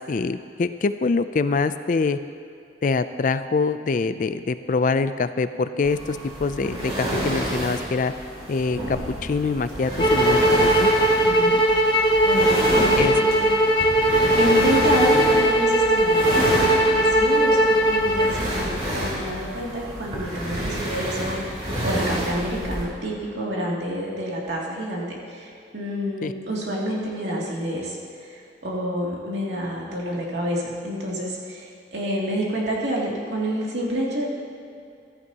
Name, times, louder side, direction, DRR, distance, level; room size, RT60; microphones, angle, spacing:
voice 1, 0.0-2.2 2.8-8.1 8.5-10.9 13.0-13.1 26.2-26.3, left 4 dB, 45° left, 12 dB, 0.4 m, -24 dB
sound 1, 5.8-22.8, right 1 dB, 35° right, 2.8 m, -29 dB
sound 2, 10.0-18.4, right 1 dB, 25° left, 1.0 m, -19 dB
voice 2, 11.2-11.9 12.2-12.5 12.8-13.5 14.4-34.3, equal, 80° right, -4 dB, 2.6 m, -28 dB
15.0 x 14.0 x 2.9 m, 2.4 s
head